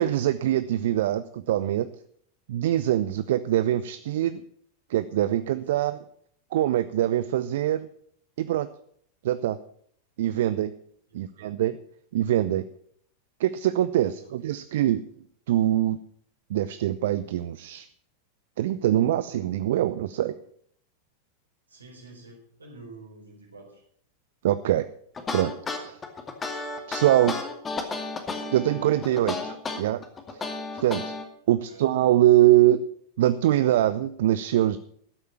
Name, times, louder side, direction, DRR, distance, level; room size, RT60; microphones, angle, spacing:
voice 1, 0.0-1.9 2.5-4.4 4.9-5.9 6.5-7.9 8.4-8.7 9.2-9.6 10.2-10.7 11.1-11.8 12.1-12.6 13.4-15.0 15.5-16.0 16.5-17.9 18.6-20.3 24.4-24.8 25.3-26.0 26.9-27.4 28.5-30.0 30.3-30.5 30.8-31.1 31.5-32.8 33.2-34.8, right 13 dB, 55° right, 14 dB, 0.6 m, -23 dB
voice 2, 5.6-5.9 11.1-11.2 14.0-14.3 21.7-23.8 31.7-31.8, right 2 dB, 75° right, 1 dB, 4.5 m, -48 dB
sound 1, 25.1-31.2, left 3 dB, 20° left, 2.3 m, -32 dB
13.5 x 8.2 x 7.2 m, 0.64 s
figure-of-eight pair, 90°, 0 cm